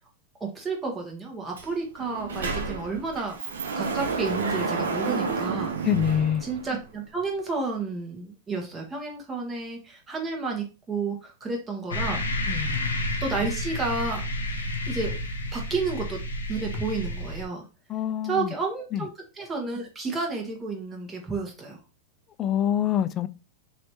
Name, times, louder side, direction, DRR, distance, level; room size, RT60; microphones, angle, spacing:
voice 1, 0.4-3.4 3.7-5.7 6.4-12.3 13.2-14.2 14.9-15.2 15.5-16.2 16.5-17.6 18.2-21.8, right 3 dB, 20° right, 1.3 m, -31 dB
Sliding door, 1.6-1.7 2.0-7.0, right 4 dB, 80° right, 0.6 m, -30 dB
voice 2, 5.8-6.4 12.5-13.0 17.9-18.5 18.9-19.0 22.4-23.3, left 10 dB, 35° left, 0.4 m, -25 dB
sound 1, 11.9-17.5, left 1 dB, 90° left, 0.7 m, -30 dB
3.2 x 2.9 x 2.9 m
hypercardioid pair, 105°, 0 cm